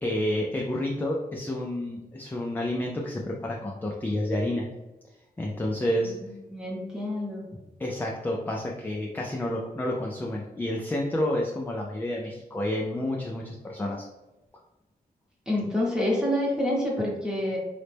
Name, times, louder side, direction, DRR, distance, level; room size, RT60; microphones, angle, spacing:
voice 1, 0.0-4.7 5.4-6.1 7.8-14.1, left 1 dB, 10° left, -1 dB, 0.3 m, -29 dB
voice 2, 6.0-7.6 15.5-17.6, left 1 dB, 5° right, -4 dB, 0.9 m, -28 dB
3.9 x 2.1 x 3.2 m, 1.0 s
wide cardioid pair, 170°, 16 cm